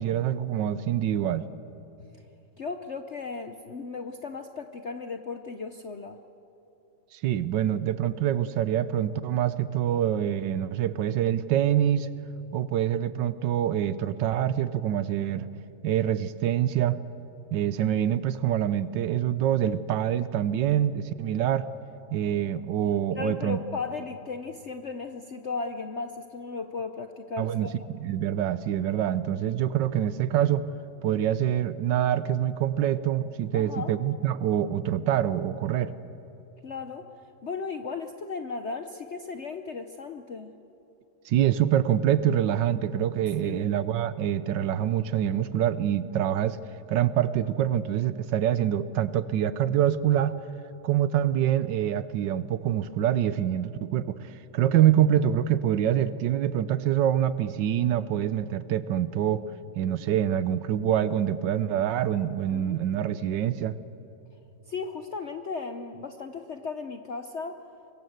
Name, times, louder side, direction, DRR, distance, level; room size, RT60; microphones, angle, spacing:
voice 1, 0.0-1.5 7.1-12.1 12.5-15.5 15.8-17.0 17.5-21.7 22.1-23.6 27.4-30.7 31.0-35.9 41.2-46.6 46.9-50.4 50.8-59.4 59.7-63.8, right 10 dB, 70° right, 15 dB, 1.3 m, -25 dB
voice 2, 2.6-6.2 23.2-27.9 33.5-33.9 36.6-37.1 37.4-40.5 43.4-43.6 62.5-62.8 64.7-67.7, left 4 dB, 55° left, 7 dB, 0.8 m, -36 dB
25.0 x 21.5 x 7.9 m, 3.0 s
omnidirectional pair, 2.1 m